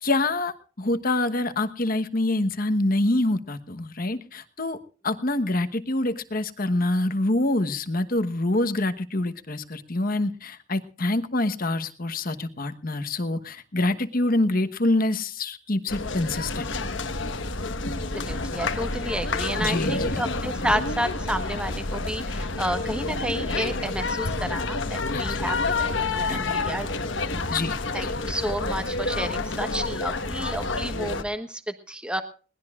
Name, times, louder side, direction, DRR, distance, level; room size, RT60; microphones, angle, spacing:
voice 1, 0.0-4.8 5.0-16.7 19.6-20.2 25.1-25.4 26.3-26.4 27.5-28.2, left 2 dB, 45° left, 9 dB, 1.2 m, -26 dB
sound 1, 15.9-31.2, left 3 dB, 65° left, 1.3 m, -29 dB
voice 2, 18.1-25.9 26.1-27.1 27.5-27.6 27.9-32.2, equal, 5° right, 8 dB, 1.2 m, -31 dB
22.0 x 19.0 x 2.5 m, 0.38 s
head